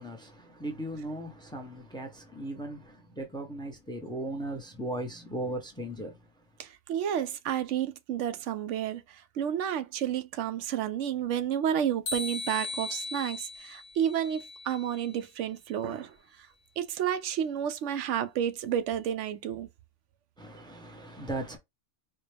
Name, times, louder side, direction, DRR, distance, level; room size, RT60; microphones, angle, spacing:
voice 1, 0.0-6.1 20.4-21.6, right 1 dB, 5° left, 0.6 m, -37 dB
voice 2, 6.6-16.2 16.8-19.7, right 9 dB, 90° right, 0.9 m, -31 dB
sound 1, 12.1-15.1, left 3 dB, 65° left, 1.1 m, -38 dB
4.4 x 2.2 x 3.3 m
omnidirectional pair, 1.2 m